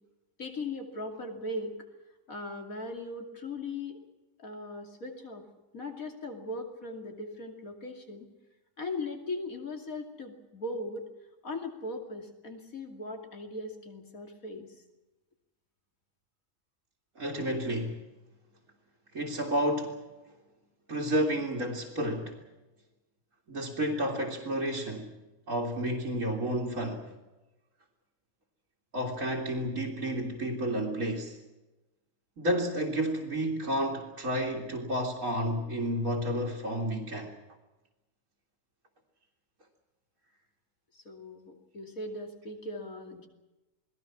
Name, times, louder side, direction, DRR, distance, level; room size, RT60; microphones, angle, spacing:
voice 1, 0.4-1.8 2.3-4.0 4.4-5.4 5.7-8.3 8.8-11.1 11.4-14.7 40.9-43.3, left 2 dB, 90° left, 3.2 m, -39 dB
voice 2, 17.2-18.0 19.1-20.1 20.9-22.4 23.5-25.1 25.5-27.1 28.9-31.4 32.4-37.3, equal, 75° right, 3.0 m, -31 dB
28.5 x 20.0 x 6.0 m
omnidirectional pair, 1.4 m